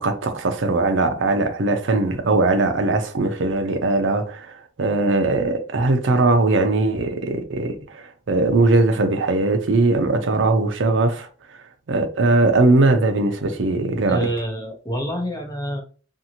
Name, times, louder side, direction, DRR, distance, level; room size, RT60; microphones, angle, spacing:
voice 1, 0.0-11.3 11.9-14.2, right 2 dB, 85° right, 0.6 m, -20 dB
voice 2, 14.1-15.8, equal, 20° left, 0.7 m, -27 dB
2.7 x 2.5 x 2.8 m
head